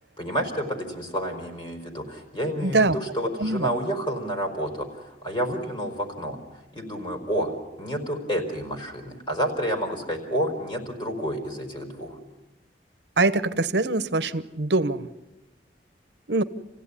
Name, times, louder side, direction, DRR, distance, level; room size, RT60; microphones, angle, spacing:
voice 1, 0.2-6.4 6.7-7.5 7.8-12.2, equal, 30° left, 3 dB, 5.0 m, -29 dB
voice 2, 2.6-3.0 3.4-3.7 13.2-15.1 16.3-16.4, right 3 dB, 75° right, 13 dB, 1.1 m, -23 dB
28.0 x 16.5 x 9.9 m, 1.0 s
head